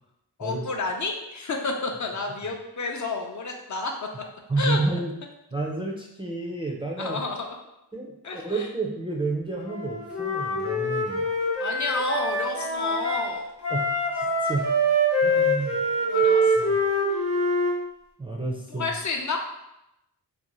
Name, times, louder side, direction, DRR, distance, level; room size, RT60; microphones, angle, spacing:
voice 1, 0.4-3.9 4.6-4.8 7.0-7.5 8.2-8.7 11.6-13.5 16.0-16.7 18.7-19.4, left 3 dB, 50° left, 2 dB, 0.4 m, -30 dB
voice 2, 4.5-5.1 5.5-7.2 7.9-11.3 13.7-13.8 14.1-14.6 15.2-15.8 16.6-16.8 18.2-19.0, right 3 dB, 15° right, -1 dB, 0.3 m, -30 dB
Wind instrument woodwind instrument, 9.7-13.3 13.6-17.8, equal, 85° left, 0.8 m, -24 dB
2.6 x 2.1 x 2.9 m, 0.87 s
wide cardioid pair, 60°, 40 cm